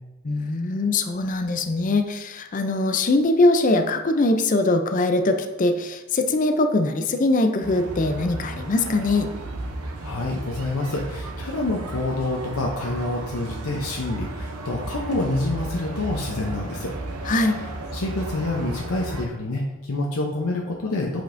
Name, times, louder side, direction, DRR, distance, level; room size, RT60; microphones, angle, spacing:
voice 1, 0.2-9.3 17.3-17.6, left 2 dB, 35° left, 6 dB, 0.4 m, -22 dB
sound 1, 7.6-19.3, right 2 dB, 80° right, 0.7 m, -34 dB
voice 2, 10.0-16.9 17.9-21.2, left 2 dB, 80° left, 0 dB, 0.7 m, -27 dB
7.6 x 5.1 x 2.6 m, 1.1 s
head